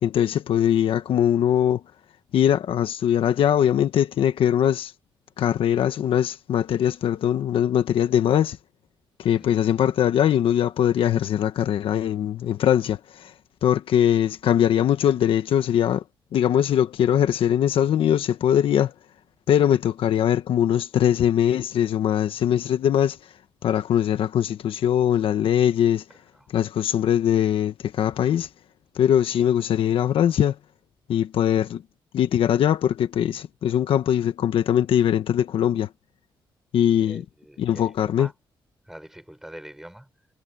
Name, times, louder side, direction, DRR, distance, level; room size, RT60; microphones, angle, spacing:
voice 1, 0.0-1.8 2.3-4.9 5.4-8.6 9.2-13.3 13.6-16.0 16.3-18.9 19.5-23.2 23.6-26.0 26.5-28.5 28.9-30.6 31.1-31.8 32.1-35.9 36.7-37.2 37.6-38.3, left 10 dB, 80° left, 1.3 m, -21 dB
voice 2, 36.9-38.3 38.8-40.3, right 1 dB, 5° right, 5.7 m, -44 dB
cardioid pair, 125°, 9 cm